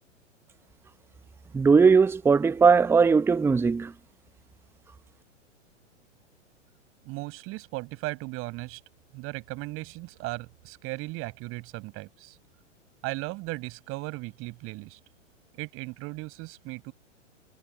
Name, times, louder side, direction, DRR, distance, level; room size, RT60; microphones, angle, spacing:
voice 1, 1.5-3.9, right 5 dB, 5° right, 0.7 m, -19 dB
voice 2, 7.0-8.8 9.1-12.4 13.0-15.0 15.5-16.9, right 23 dB, 35° right, 6.2 m, -37 dB
figure-of-eight pair, 105°, 37 cm